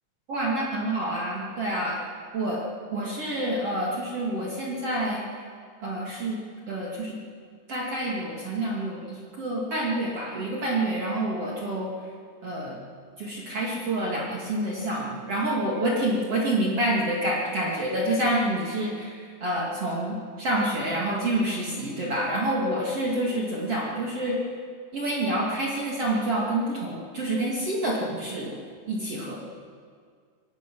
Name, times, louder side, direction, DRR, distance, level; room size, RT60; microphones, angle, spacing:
voice 1, 0.3-2.0 2.3-2.6 2.9-5.2 5.8-6.4 6.7-7.2 7.7-11.9 12.4-12.8 13.2-24.4 24.9-28.6 28.9-29.4, right 1 dB, 40° right, -4 dB, 2.4 m, -28 dB
23.0 x 18.0 x 6.2 m, 2.1 s
omnidirectional pair, 5.4 m